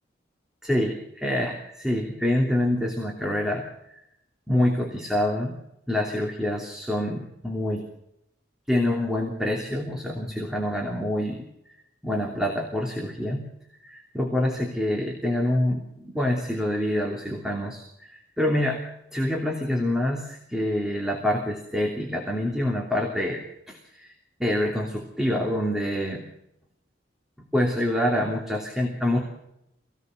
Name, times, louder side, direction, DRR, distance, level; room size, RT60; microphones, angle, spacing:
voice 1, 0.6-3.7 4.5-5.6 5.9-7.8 8.7-11.4 12.0-13.5 13.8-18.8 19.1-23.4 23.7-24.1 24.4-26.2 27.4-29.2, left 1 dB, 5° right, -1 dB, 2.9 m, -26 dB
26.0 x 18.5 x 6.5 m, 0.81 s
head